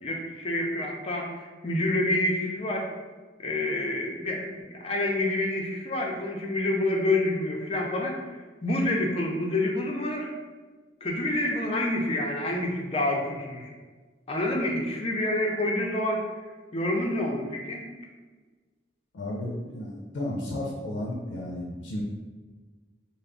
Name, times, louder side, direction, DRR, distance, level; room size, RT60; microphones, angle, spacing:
voice 1, 0.0-2.9 3.4-10.3 11.0-13.7 14.3-16.2 16.7-17.9, left 1 dB, 30° left, 0 dB, 0.5 m, -28 dB
voice 2, 19.1-22.0, left 1 dB, 85° left, -2 dB, 0.5 m, -33 dB
3.3 x 2.0 x 3.7 m, 1.4 s
head